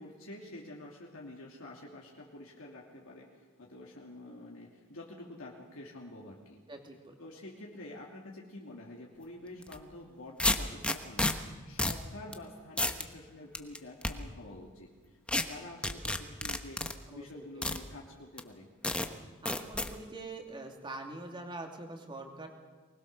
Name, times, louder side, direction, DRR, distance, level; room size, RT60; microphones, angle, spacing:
voice 1, 0.0-6.6 7.2-16.8 17.1-18.7, left 1 dB, 65° left, -2 dB, 2.8 m, -48 dB
voice 2, 6.7-7.1 17.1-17.3 19.4-22.5, right 2 dB, 20° right, 3 dB, 2.7 m, -44 dB
sound 1, 9.6-9.8 10.4-11.3 11.8-12.0 12.3-12.4 12.8-13.0 13.5-14.1 15.3-15.4 15.8-16.9 17.6-17.8 18.4-18.5 18.8-19.1 19.5-19.9, left 1 dB, 5° left, 1.1 m, -30 dB
24.0 x 20.5 x 6.8 m, 1.4 s
head